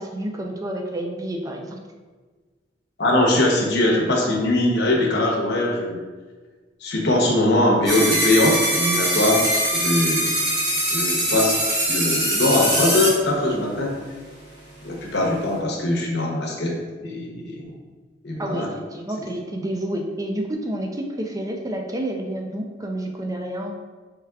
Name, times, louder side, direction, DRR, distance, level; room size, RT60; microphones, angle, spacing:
voice 1, 0.0-1.8 18.4-23.7, right 1 dB, 20° right, 2 dB, 0.4 m, -29 dB
voice 2, 3.0-6.0 6.8-9.4 9.7-10.3 10.9-11.6 11.9-14.0 14.8-17.6 18.2-18.7, left 1 dB, 65° left, -1 dB, 0.8 m, -21 dB
sound 1, 7.9-13.1, right 1 dB, 65° right, 1.3 m, -22 dB
4.8 x 3.4 x 2.3 m, 1.4 s
head